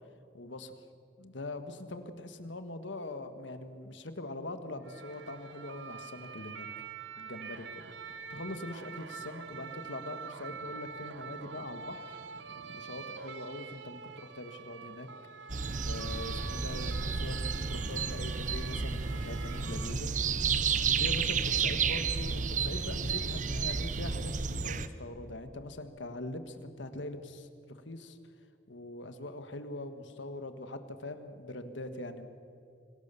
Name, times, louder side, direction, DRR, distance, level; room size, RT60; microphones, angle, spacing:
voice 1, 0.3-0.9 1.2-6.7 7.2-7.8 8.3-12.1 12.7-15.1 15.9-20.1 20.9-28.2 28.7-32.3, left 2 dB, 85° left, 9 dB, 1.7 m, -42 dB
sound 1, 4.8-19.9, right 5 dB, 80° right, 1.0 m, -45 dB
sound 2, 15.5-24.9, right 5 dB, 40° right, 0.8 m, -31 dB
25.5 x 18.0 x 7.0 m, 2.6 s
head